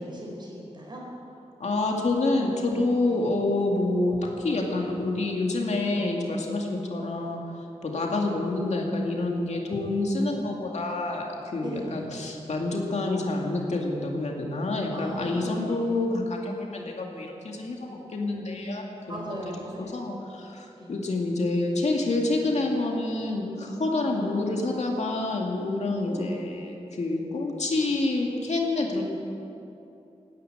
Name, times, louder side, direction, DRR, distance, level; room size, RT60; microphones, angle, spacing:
voice 1, 0.1-1.0 3.0-3.3 5.8-6.0 8.1-8.3 11.6-12.1 14.9-15.9 16.7-16.9 19.1-20.0 20.7-20.9 24.0-24.1 26.0-26.4, equal, 40° right, -2 dB, 4.8 m, -39 dB
voice 2, 1.6-7.4 7.8-19.2 19.8-29.0, left 2 dB, 70° left, 0 dB, 2.3 m, -27 dB
18.0 x 10.0 x 7.9 m, 2.8 s
wide cardioid pair, 130°, 12 cm